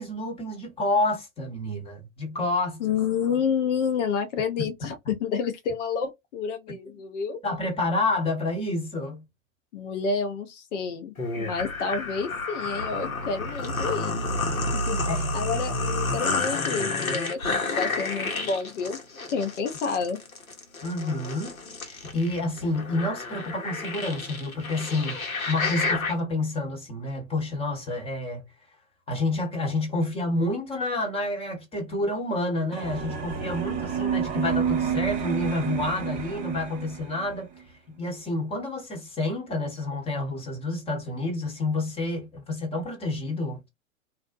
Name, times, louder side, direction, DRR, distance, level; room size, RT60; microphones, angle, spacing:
voice 1, 0.0-2.8 4.6-4.9 7.4-9.3 15.1-15.4 20.8-21.5 21.8-28.4 29.1-37.5 37.9-43.7, left 2 dB, 15° left, 0.8 m, -29 dB
voice 2, 2.8-7.4 9.7-14.2 14.7-15.0 15.3-19.0 19.3-20.2, left 5 dB, 60° left, 0.7 m, -29 dB
sound 1, 11.2-26.1, left 3 dB, 85° left, 1.1 m, -30 dB
sound 2, 32.7-37.4, right 7 dB, 20° right, 0.5 m, -29 dB
2.5 x 2.1 x 2.5 m
figure-of-eight pair, 100°, 40 cm